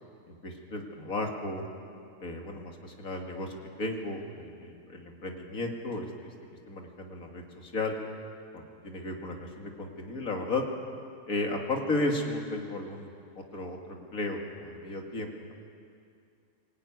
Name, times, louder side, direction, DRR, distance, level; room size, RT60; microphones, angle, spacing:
voice 1, 0.3-1.6 2.2-6.3 6.7-7.9 8.5-10.6 11.3-13.1 13.4-15.5, left 2 dB, 85° left, 2 dB, 2.8 m, -34 dB
23.0 x 18.0 x 9.5 m, 2.4 s
omnidirectional pair, 1.4 m